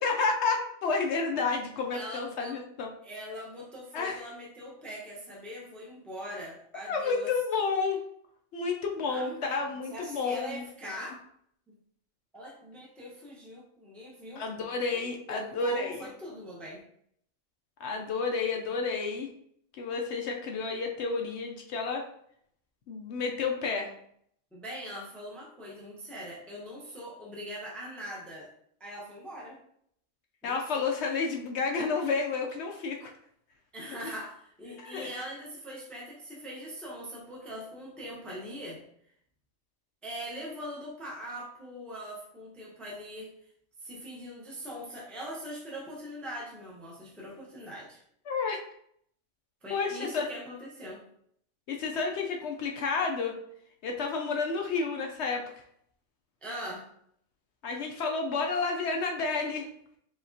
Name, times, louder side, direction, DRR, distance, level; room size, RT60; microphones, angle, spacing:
voice 1, 0.0-2.9 3.9-4.2 6.9-8.0 8.5-10.6 14.4-16.0 17.8-19.3 19.8-22.0 22.9-23.9 30.4-33.1 34.7-35.1 48.3-48.6 49.7-50.3 51.7-53.3 53.8-55.6 57.6-59.7, left 4 dB, 65° left, 2 dB, 0.8 m, -30 dB
voice 2, 1.9-2.5 3.0-7.3 9.1-9.4 9.9-11.2 11.7-11.8 12.3-14.4 14.9-16.8 24.5-28.5 28.8-29.6 30.4-30.9 33.7-38.8 40.0-43.3 43.8-48.0 49.6-51.0 56.4-56.9, equal, ahead, -4 dB, 0.8 m, -42 dB
5.0 x 2.8 x 2.7 m, 0.68 s
omnidirectional pair, 1.4 m